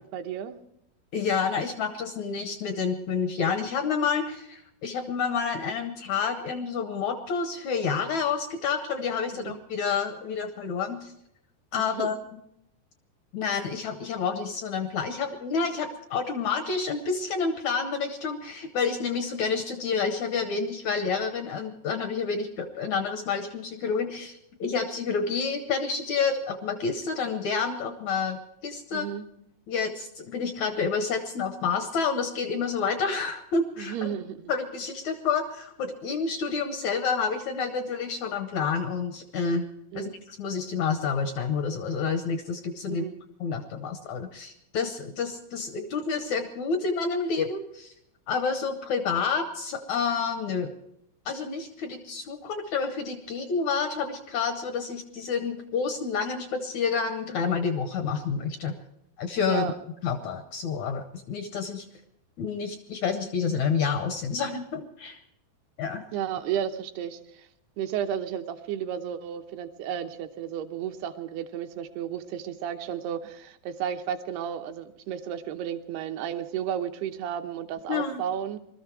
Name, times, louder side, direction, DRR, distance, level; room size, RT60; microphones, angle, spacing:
voice 1, 0.1-0.6 9.3-9.6 11.7-12.1 28.9-29.3 33.8-34.5 39.9-40.2 42.9-43.1 59.5-59.8 66.1-67.5 67.8-78.6, right 9 dB, 80° right, 7 dB, 2.9 m, -33 dB
voice 2, 1.1-11.1 11.7-12.1 13.3-29.1 29.7-33.9 34.5-39.6 39.9-43.0 43.4-47.9 48.3-50.7 51.2-58.7 59.2-59.7 60.0-61.8 62.4-65.2 65.8-66.0 77.9-78.2, left 5 dB, 75° left, 7 dB, 1.6 m, -29 dB
21.0 x 13.5 x 4.7 m, 0.79 s
omnidirectional pair, 4.6 m